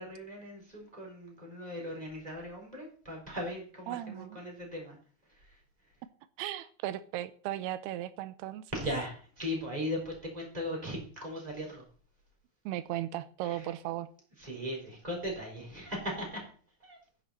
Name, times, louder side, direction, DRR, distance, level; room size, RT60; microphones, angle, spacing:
voice 1, 0.0-5.0 5.2-6.0 8.7-11.8 13.4-13.7 14.4-16.4 16.8-17.0, equal, 10° right, 0 dB, 4.2 m, -38 dB
voice 2, 3.9-4.4 6.4-8.7 12.7-14.1, right 14 dB, 85° right, 13 dB, 2.7 m, -36 dB
12.5 x 10.5 x 4.3 m, 0.43 s
omnidirectional pair, 4.5 m